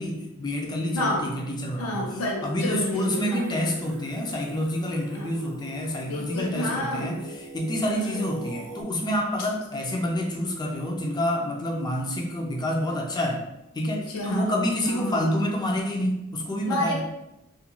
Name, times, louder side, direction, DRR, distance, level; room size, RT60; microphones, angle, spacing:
voice 1, 0.0-2.1 2.4-7.2 7.5-13.5 13.7-17.0, left 1 dB, 20° left, 0 dB, 0.4 m, -28 dB
voice 2, 0.9-1.3 1.8-3.6 5.1-5.3 6.1-7.2 7.8-8.3 14.0-15.3 16.7-17.0, left 1 dB, 90° left, -1 dB, 0.7 m, -30 dB
Singing, 2.9-8.8, right 1 dB, 55° right, 0.4 m, -42 dB
2.4 x 2.2 x 2.8 m, 0.90 s
head